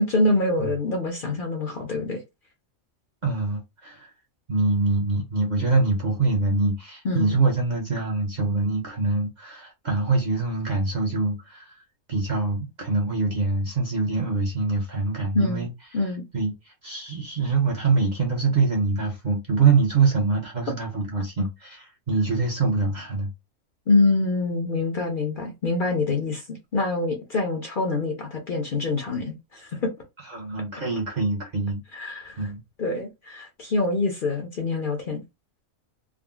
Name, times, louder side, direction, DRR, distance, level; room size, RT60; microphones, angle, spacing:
voice 1, 0.0-2.2 7.0-7.4 15.3-15.6 15.9-16.2 23.9-29.9 31.9-32.5 32.8-35.2, left 2 dB, 50° left, 0.7 m, -25 dB
voice 2, 3.2-4.1 4.5-11.7 12.1-15.7 16.3-16.5 16.8-23.3 30.3-31.8 32.4-32.6, right 3 dB, 40° right, 0.7 m, -24 dB
3.6 x 2.0 x 2.3 m
omnidirectional pair, 1.4 m